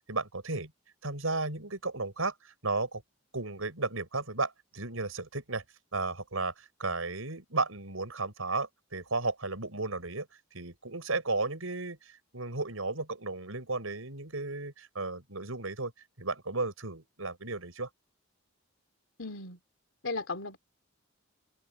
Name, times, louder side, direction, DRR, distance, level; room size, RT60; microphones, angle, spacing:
voice 1, 0.1-0.7 1.0-3.0 3.3-5.6 5.9-10.3 10.5-12.0 12.3-15.9 16.2-17.9, right 3 dB, 80° right, 5.6 m, -34 dB
voice 2, 19.2-19.6 20.0-20.6, left 3 dB, 65° left, 3.0 m, -36 dB
open air
head